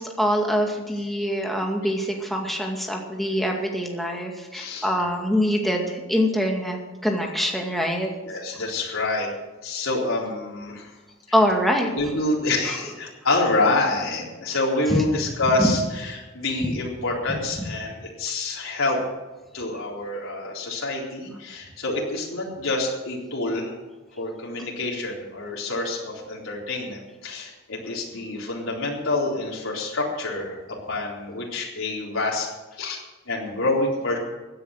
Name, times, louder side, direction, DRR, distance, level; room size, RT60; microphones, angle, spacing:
voice 1, 0.0-8.1 11.3-11.9 12.7-12.8, equal, ahead, 0 dB, 2.2 m, -24 dB
voice 2, 4.5-4.9 8.2-9.3 9.6-11.0 11.9-19.0 19.5-23.8 24.2-30.6 30.9-34.2, left 2 dB, 85° left, -3 dB, 3.9 m, -27 dB
16.0 x 10.0 x 6.6 m, 1.2 s
head